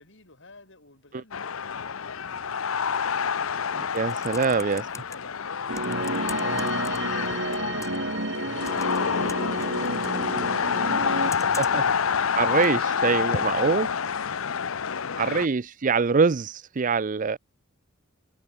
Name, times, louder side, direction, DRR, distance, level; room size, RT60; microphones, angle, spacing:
voice 1, 0.0-3.5 4.1-10.7 12.8-15.6, left 3 dB, 65° left, 5.4 m, -50 dB
sound 1, 1.3-15.5, left 6 dB, 90° left, 0.8 m, -28 dB
Computer keyboard, 3.7-5.2 5.7-7.3 7.5-8.1 8.6-10.2 11.3-11.9 12.6-12.7, left 4 dB, 15° left, 6.0 m, -42 dB
voice 2, 3.7-4.8 11.4-12.0 12.4-13.9 15.2-17.4, right 5 dB, 40° right, 0.5 m, -24 dB
sound 2, 5.7-11.3, right 2 dB, 60° right, 2.7 m, -31 dB
head